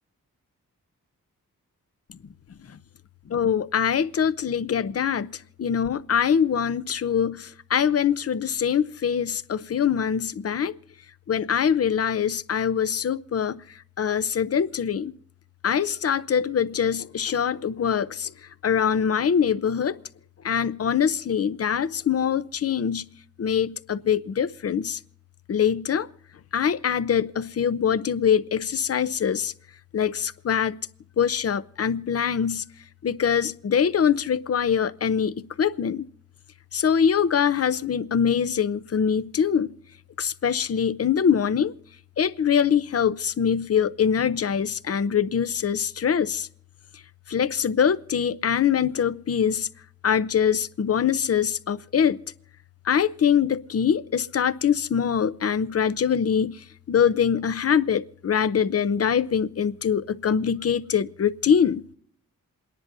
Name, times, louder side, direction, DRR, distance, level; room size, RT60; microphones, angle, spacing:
voice 1, 3.3-5.3 5.6-10.7 11.3-13.6 14.0-15.1 15.6-18.3 18.6-20.0 20.4-23.0 23.4-25.0 25.5-26.1 26.5-29.5 29.9-30.8 31.2-32.6 33.0-36.0 36.7-39.7 40.2-41.7 42.2-46.5 47.3-49.7 50.0-52.2 52.9-56.6 56.9-61.8, left 7 dB, 45° left, 0.7 m, -23 dB
27.5 x 10.5 x 2.7 m
cardioid pair, 50°, 35 cm